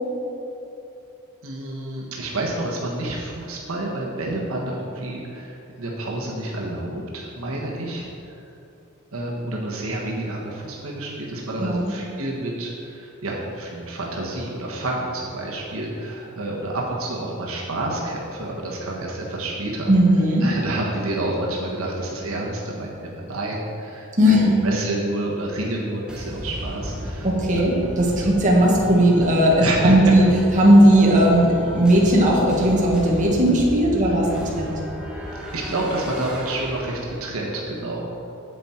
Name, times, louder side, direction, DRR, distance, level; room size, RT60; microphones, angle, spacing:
voice 1, 1.4-8.3 9.1-19.9 20.4-27.6 28.2-28.3 29.6-30.1 34.0-34.4 35.5-38.1, right 1 dB, 75° right, -3 dB, 1.3 m, -29 dB
voice 2, 19.9-20.5 24.2-24.6 27.2-30.2 30.6-34.3 34.6-34.7, equal, 35° right, -4 dB, 1.7 m, -17 dB
sound 1, 26.1-37.5, equal, 5° right, 1.4 m, -34 dB
9.3 x 7.8 x 4.4 m, 2.8 s
head